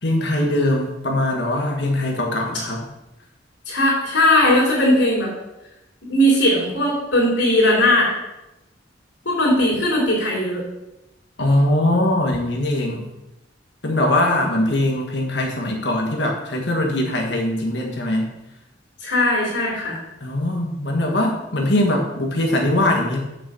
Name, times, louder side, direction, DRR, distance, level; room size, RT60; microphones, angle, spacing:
voice 1, 0.0-2.8 11.4-13.0 13.8-18.3 20.2-23.2, left 1 dB, 65° left, 0 dB, 1.6 m, -21 dB
voice 2, 3.7-5.3 6.1-8.1 9.3-10.6 12.8-13.0 19.0-20.0, left 1 dB, 85° left, -5 dB, 3.8 m, -18 dB
6.8 x 6.5 x 7.0 m, 0.95 s
head